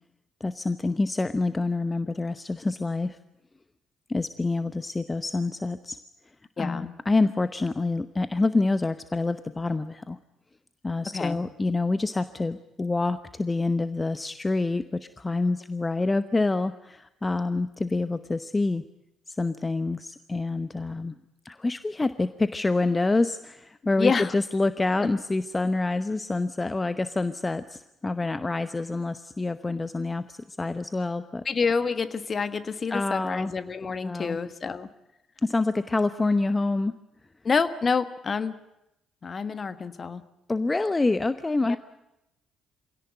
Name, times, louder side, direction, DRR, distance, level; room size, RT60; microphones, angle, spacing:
voice 1, 0.4-3.2 4.1-6.0 6.6-10.2 10.8-18.8 19.3-21.2 21.4-31.4 32.9-33.5 34.0-34.4 35.4-36.9 40.5-41.8, left 3 dB, 20° left, 12 dB, 0.9 m, -27 dB
voice 2, 6.6-6.9 11.1-11.4 24.0-24.3 25.0-25.1 31.4-34.9 37.4-38.6 39.2-40.2 41.6-41.8, left 5 dB, 40° left, 12 dB, 1.5 m, -28 dB
25.0 x 17.5 x 10.0 m, 0.90 s
figure-of-eight pair, 45°, 0 cm